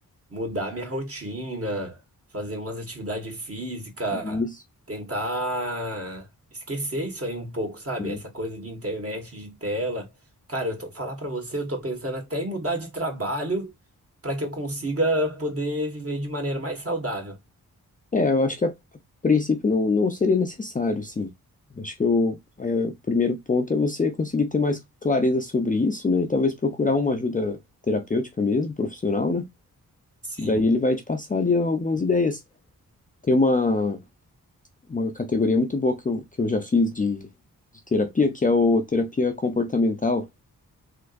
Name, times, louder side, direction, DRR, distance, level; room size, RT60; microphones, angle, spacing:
voice 1, 0.3-2.0 2.3-4.4 4.9-10.1 10.5-13.7 14.2-17.4 30.2-30.6, right 1 dB, 40° right, 1.7 m, -30 dB
voice 2, 18.1-18.7 19.2-21.3 21.8-27.6 27.9-29.4 30.4-32.4 33.2-34.0 34.9-37.3 37.9-40.3, left 3 dB, 20° left, 0.5 m, -23 dB
3.4 x 2.9 x 2.5 m
cardioid pair, 55°, 37 cm